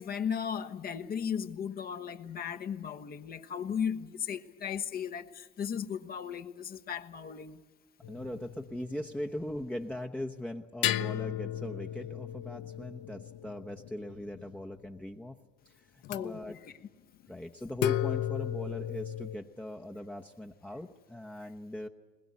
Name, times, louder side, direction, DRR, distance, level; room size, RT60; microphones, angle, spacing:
voice 1, 0.0-7.6 16.1-16.6, left 8 dB, 50° left, 1.3 m, -36 dB
sound 1, 8.0-9.2 10.8-14.6 16.0-16.2 17.8-19.4, left 12 dB, 70° left, 0.7 m, -34 dB
voice 2, 8.1-15.4 15.7-16.6 17.3-21.9, left 1 dB, 5° left, 0.9 m, -40 dB
21.0 x 20.5 x 9.5 m
supercardioid pair, 85°, 20 cm